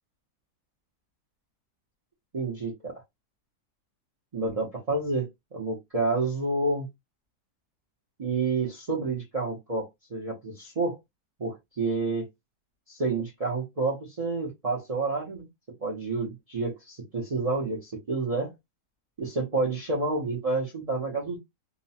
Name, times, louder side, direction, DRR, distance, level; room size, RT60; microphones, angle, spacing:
voice 1, 2.3-3.0 4.3-6.9 8.2-11.0 11.4-12.3 12.9-15.5 15.8-18.5 19.2-21.4, right 3 dB, 65° right, 0.3 m, -29 dB
2.9 x 2.1 x 2.7 m
omnidirectional pair, 1.9 m